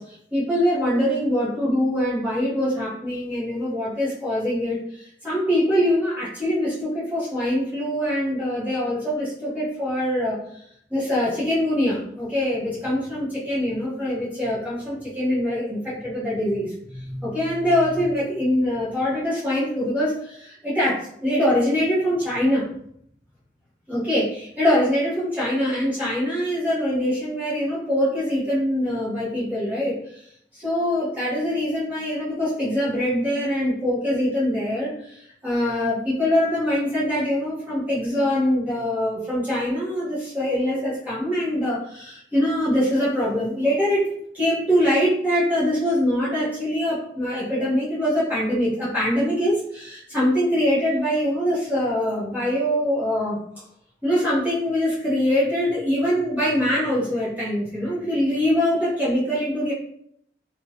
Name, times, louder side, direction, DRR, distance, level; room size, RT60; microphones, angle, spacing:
voice 1, 0.0-10.6 10.9-22.7 23.9-30.2 30.5-44.1 44.3-53.6 54.0-59.7, equal, 10° right, -11 dB, 0.8 m, -23 dB
2.6 x 2.2 x 2.7 m, 0.70 s
head